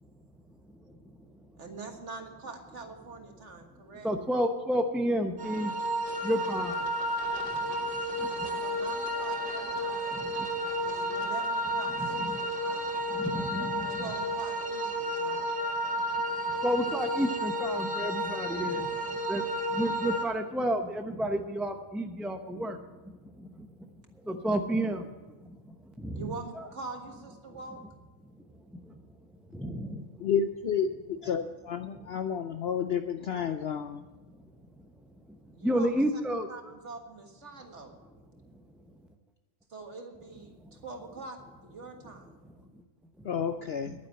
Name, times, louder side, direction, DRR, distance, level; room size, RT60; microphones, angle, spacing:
voice 1, 1.6-4.1 8.6-10.3 10.8-13.1 14.0-15.5 26.1-27.8 35.5-36.0 36.5-37.9 39.7-42.3, right 3 dB, 50° right, 4 dB, 1.9 m, -44 dB
voice 2, 4.0-5.7 6.2-6.8 12.0-12.4 13.1-13.8 16.6-18.8 19.3-19.4 19.7-22.8 24.3-25.1 26.0-26.3 29.5-30.0 35.6-36.5, equal, ahead, 5 dB, 0.4 m, -30 dB
sound 1, 5.4-20.2, equal, 35° right, 2.1 m, -32 dB
voice 3, 30.2-34.0 43.2-43.9, left 7 dB, 60° left, 8 dB, 0.6 m, -31 dB
11.0 x 9.6 x 7.5 m, 1.2 s
omnidirectional pair, 1.5 m